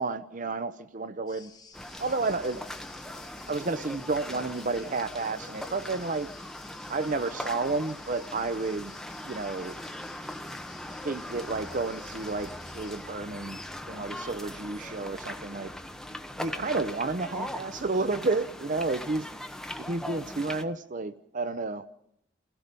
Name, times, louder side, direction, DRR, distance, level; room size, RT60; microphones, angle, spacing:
voice 1, 0.0-1.5 2.0-2.6 3.5-6.3 6.9-8.9 9.2-9.8 11.0-15.7 16.4-19.3 19.8-21.9, right 3 dB, 45° right, 12 dB, 0.7 m, -31 dB
sound 1, 1.3-13.0, left 5 dB, 25° left, 2.8 m, -53 dB
sound 2, 1.7-20.6, left 1 dB, 5° left, 1.2 m, -40 dB
29.5 x 16.5 x 5.3 m, 0.75 s
head